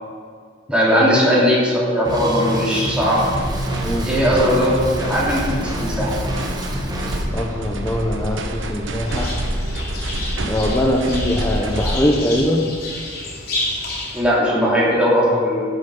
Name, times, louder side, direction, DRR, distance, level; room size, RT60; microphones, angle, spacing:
voice 1, 0.7-3.2 4.0-6.1 14.1-15.7, equal, 5° right, -7 dB, 3.0 m, -18 dB
Drum kit, 2.1-7.2, right 1 dB, 20° right, 1.3 m, -27 dB
sound 1, 3.2-12.0, right 1 dB, 80° right, 1.0 m, -27 dB
voice 2, 7.3-9.3 10.5-12.7, left 1 dB, 15° left, -2 dB, 0.9 m, -21 dB
sound 2, 9.0-14.2, left 2 dB, 55° left, 2.8 m, -30 dB
11.5 x 7.3 x 5.5 m, 2.2 s
head